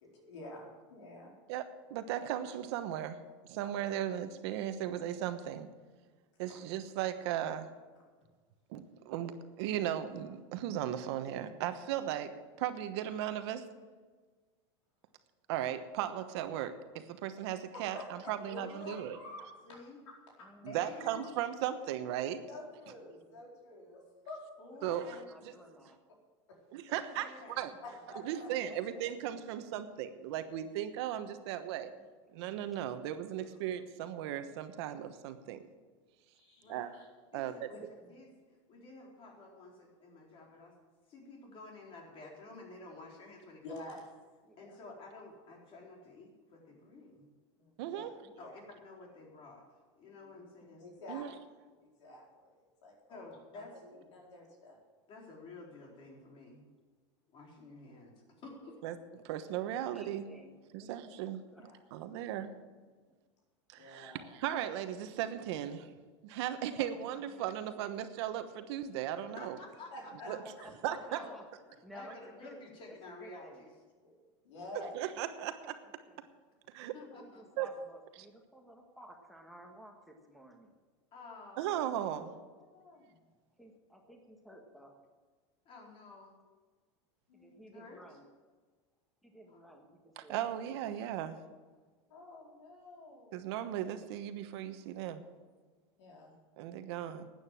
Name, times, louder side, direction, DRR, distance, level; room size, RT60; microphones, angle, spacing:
voice 1, 0.0-1.3 6.5-6.6 17.7-18.3 18.8-19.4 20.4-20.5 22.5-24.4 24.7-24.8 27.8-28.8 33.4-33.6 36.3-37.1 37.7-37.8 43.6-44.0 44.7-44.8 47.6-48.6 50.8-51.2 51.8-54.8 61.6-61.8 62.0-62.1 63.8-64.4 66.7-66.8 69.9-70.3 74.0-74.1 74.4-75.0 82.5-83.2 87.3-87.9 92.1-93.4 96.0-96.3, left 1 dB, 85° left, -2 dB, 4.4 m, -50 dB
voice 2, 1.5-3.2 3.5-5.7 6.4-7.7 8.7-13.7 15.5-19.2 20.6-22.4 24.8-25.5 26.7-27.7 28.2-31.9 32.3-35.6 36.7-36.9 37.3-37.7 47.8-48.1 51.1-51.3 58.8-59.0 59.2-60.3 60.7-61.4 61.9-62.5 63.7-65.9 66.2-69.6 70.3-70.4 70.8-71.2 74.7-75.8 76.7-76.9 77.6-77.7 81.6-82.3 90.2-91.4 93.3-95.2 96.6-97.3, right 11 dB, 70° right, 9 dB, 1.2 m, -37 dB
voice 3, 18.5-19.1 19.6-20.0 20.7-21.4 24.6-25.3 27.2-27.7 36.6-36.9 37.3-40.7 41.1-44.0 44.6-47.3 48.4-49.6 49.9-50.9 53.1-53.7 55.1-56.6 57.3-58.1 58.4-58.8 69.4-69.9 70.2-70.4 71.0-71.4 71.9-73.7 76.9-77.6 81.1-82.0 85.6-86.4 87.7-88.2 89.5-89.7, left 3 dB, 35° left, -1 dB, 4.2 m, -51 dB
voice 4, 20.4-21.3 23.0-23.4 24.8-26.0 28.6-29.0 31.9-32.1 44.4-44.8 47.8-48.3 50.1-50.7 59.9-61.6 62.6-62.7 66.8-67.4 70.2-71.4 71.8-72.2 72.4-72.6 73.2-73.6 75.8-76.2 76.8-80.7 83.6-85.0 87.3-88.2 89.2-90.8, right 1 dB, ahead, 2 dB, 1.6 m, -55 dB
12.5 x 9.2 x 7.6 m, 1.4 s
supercardioid pair, 130°, 15 cm